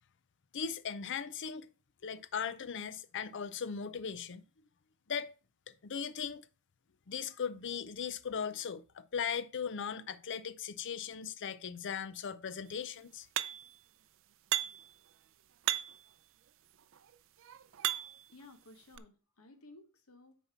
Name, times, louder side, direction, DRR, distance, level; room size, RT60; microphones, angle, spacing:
voice 1, 0.5-1.7 2.0-4.4 5.1-5.3 5.8-6.4 7.1-13.3, left 7 dB, 60° left, 0.5 m, -38 dB
sound 1, 13.4-13.8 14.5-14.9 15.6-16.1 16.9-18.3 19.0-19.1, right 12 dB, 65° right, 0.5 m, -35 dB
voice 2, 18.3-20.4, left 2 dB, 80° left, 1.1 m, -56 dB
6.8 x 4.3 x 5.8 m
head